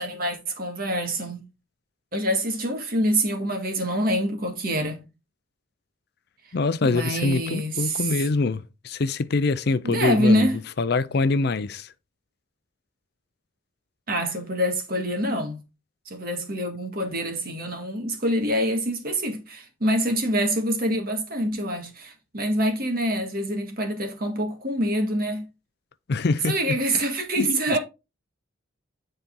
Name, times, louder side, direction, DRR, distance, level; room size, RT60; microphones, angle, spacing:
voice 1, 0.0-1.5 2.1-5.0 6.8-8.1 9.8-10.6 14.1-15.6 16.1-25.4 26.5-27.8, equal, 45° right, 1.8 m, -25 dB
voice 2, 6.5-10.5 10.8-11.9 26.1-27.0 27.4-27.8, left 3 dB, 55° left, 0.5 m, -25 dB
9.7 x 4.2 x 3.7 m
head